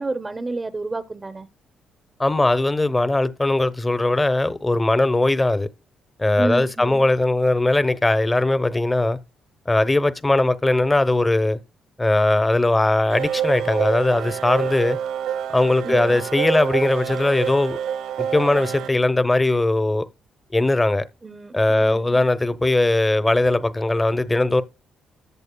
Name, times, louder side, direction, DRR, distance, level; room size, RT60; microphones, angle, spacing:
voice 1, 0.0-1.5 6.4-7.0 15.8-16.2 21.2-22.2, right 3 dB, 25° right, 0.6 m, -30 dB
voice 2, 2.2-5.7 6.2-9.2 9.7-11.6 12.0-15.0 15.5-17.8 18.2-20.1 20.5-21.0 21.5-24.6, left 2 dB, 15° left, 0.7 m, -19 dB
sound 1, 13.1-18.9, right 9 dB, 80° right, 0.4 m, -27 dB
13.5 x 8.0 x 2.2 m
cardioid pair, 90°, 0 cm